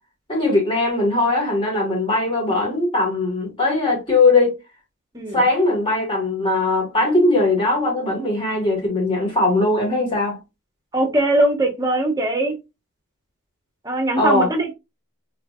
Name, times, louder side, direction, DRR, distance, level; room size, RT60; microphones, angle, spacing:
voice 1, 0.3-4.5 5.3-10.4 14.2-14.5, left 2 dB, 25° left, 2.0 m, -20 dB
voice 2, 5.1-5.5 10.9-12.6 13.8-14.7, right 1 dB, 15° right, 1.0 m, -21 dB
3.9 x 3.2 x 2.5 m
head